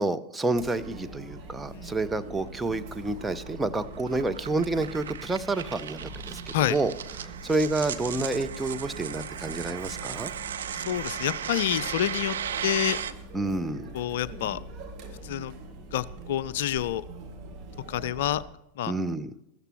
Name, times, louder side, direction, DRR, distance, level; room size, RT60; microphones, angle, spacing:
voice 1, 0.0-6.4 6.7-6.9 7.2-10.3 13.3-13.8 18.9-19.3, right 2 dB, 5° right, 8 dB, 0.6 m, -29 dB
Chatter, 0.5-18.4, right 2 dB, 35° right, 1.8 m, -43 dB
sound 1, 2.4-13.1, right 9 dB, 65° right, 0.6 m, -36 dB
voice 2, 10.7-12.4 12.6-13.0 13.9-14.6 15.2-15.5 15.9-17.0 17.9-18.4 18.8-18.9, left 12 dB, 55° left, 18 dB, 0.3 m, -28 dB
14.5 x 13.5 x 3.0 m, 0.88 s
figure-of-eight pair, 90°, 0 cm